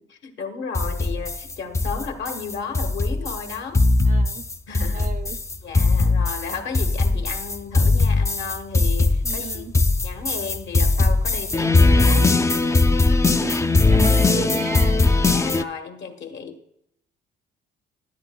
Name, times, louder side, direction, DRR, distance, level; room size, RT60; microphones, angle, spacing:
voice 1, 0.0-3.8 4.7-5.1 5.6-9.7 10.0-12.3 14.9-16.6, left 5 dB, 65° left, 6 dB, 1.3 m, -34 dB
sound 1, 0.8-15.6, left 3 dB, 15° left, 0.3 m, -19 dB
voice 2, 4.0-4.5 4.9-5.4 9.2-9.7 13.3-15.0, right 6 dB, 40° right, 10 dB, 0.6 m, -34 dB
12.0 x 10.5 x 2.3 m, 0.77 s
cardioid pair, 90°, 20 cm